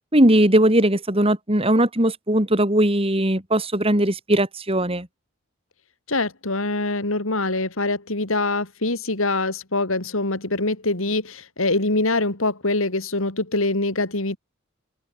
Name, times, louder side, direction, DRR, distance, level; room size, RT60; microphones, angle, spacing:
voice 1, 0.1-5.1, right 1 dB, 25° right, 3.8 m, -19 dB
voice 2, 6.1-14.4, left 2 dB, 75° left, 3.3 m, -24 dB
head